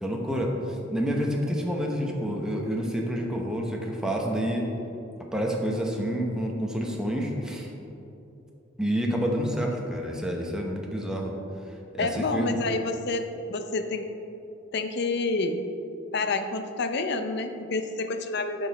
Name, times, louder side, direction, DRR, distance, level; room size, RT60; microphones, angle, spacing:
voice 1, 0.0-4.7 5.3-7.7 8.8-11.3 11.9-12.5, equal, 5° right, -1 dB, 1.0 m, -28 dB
voice 2, 12.0-14.1 14.7-15.7 16.1-18.7, left 3 dB, 60° left, 8 dB, 0.6 m, -28 dB
11.0 x 6.2 x 4.2 m, 2.8 s
head